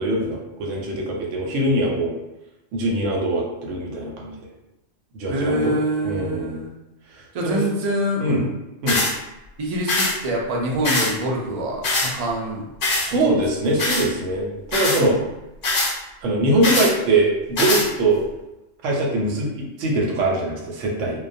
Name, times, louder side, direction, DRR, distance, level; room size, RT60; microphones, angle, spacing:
voice 1, 0.0-2.1 2.7-4.4 5.1-5.7 6.0-6.6 7.1-7.6 8.2-8.4 8.8-9.0 12.9-15.1 16.2-18.2 18.8-19.5 19.8-21.2, right 2 dB, 80° right, -2 dB, 1.0 m, -22 dB
voice 2, 5.3-6.7 7.3-8.5 9.6-12.7 13.1-13.3 15.0-15.3, right 1 dB, 65° right, -2 dB, 0.3 m, -25 dB
sound 1, 8.9-9.1 9.9-10.1 10.8-11.1 11.8-12.1 12.8-13.1 13.8-14.1 14.7-15.0 15.6-15.9 16.6-16.9 17.6-17.9, left 2 dB, 55° left, 0.6 m, -21 dB
2.2 x 2.2 x 2.6 m, 0.96 s
omnidirectional pair, 1.3 m